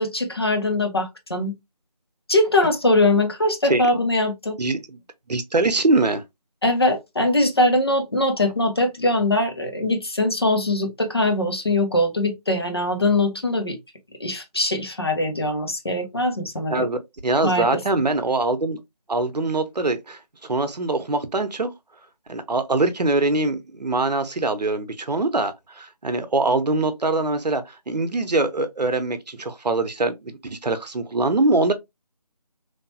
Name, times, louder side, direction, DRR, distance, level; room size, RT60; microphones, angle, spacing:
voice 1, 0.0-1.5 2.3-4.6 6.6-13.8 14.2-16.9 17.4-17.8, left 1 dB, 40° left, 0.5 m, -22 dB
voice 2, 5.3-6.2 16.7-18.8 19.1-21.7 22.3-31.7, right 2 dB, 85° right, 0.7 m, -23 dB
3.2 x 2.0 x 2.7 m
figure-of-eight pair, 165°, 21 cm